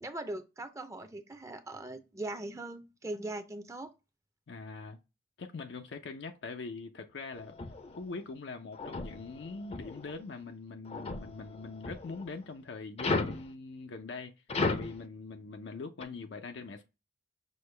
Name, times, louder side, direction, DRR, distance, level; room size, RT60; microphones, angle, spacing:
voice 1, 0.0-3.9, right 2 dB, 15° right, 0.5 m, -40 dB
voice 2, 4.5-5.0 5.4-7.5 8.0-14.3 14.7-16.8, left 4 dB, 85° left, 0.5 m, -42 dB
sound 1, 7.3-8.0 8.7-10.1 10.8-12.3 13.0-13.5 14.5-15.0 16.0-16.1, left 3 dB, 35° left, 0.5 m, -35 dB
6.3 x 2.2 x 3.2 m
head